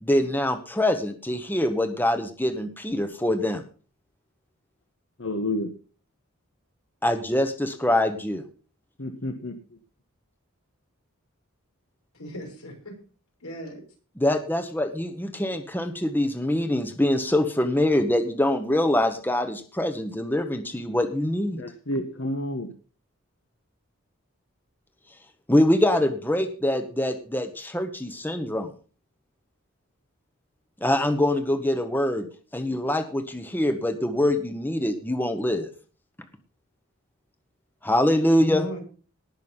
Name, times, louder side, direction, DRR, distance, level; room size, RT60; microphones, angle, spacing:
voice 1, 0.0-3.6 7.0-8.4 14.2-21.6 25.5-28.7 30.8-32.3 32.5-35.7 37.8-38.7, left 1 dB, 10° left, 7 dB, 1.0 m, -24 dB
voice 2, 5.2-5.7 9.0-9.6 21.6-22.7, left 1 dB, 55° left, 5 dB, 1.3 m, -30 dB
voice 3, 12.1-13.0 13.4-13.8 38.4-38.8, equal, 85° left, 1 dB, 6.3 m, -36 dB
18.5 x 6.3 x 5.6 m, 0.39 s
head